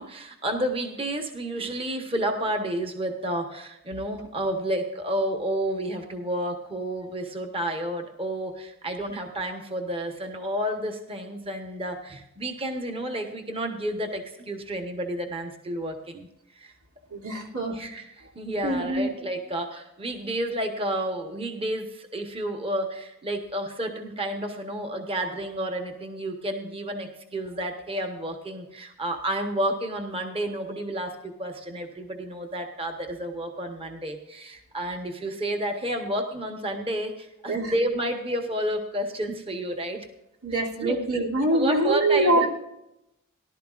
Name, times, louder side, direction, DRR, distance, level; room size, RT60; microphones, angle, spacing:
voice 1, 0.0-16.3 16.5-16.7 17.7-40.1 40.8-41.0 41.5-42.5, right 1 dB, 25° right, 4 dB, 1.1 m, -31 dB
voice 2, 17.1-17.8 18.6-19.1 37.5-37.7 40.4-42.5, right 2 dB, 90° right, -1 dB, 2.8 m, -24 dB
18.0 x 12.0 x 2.5 m, 0.87 s
head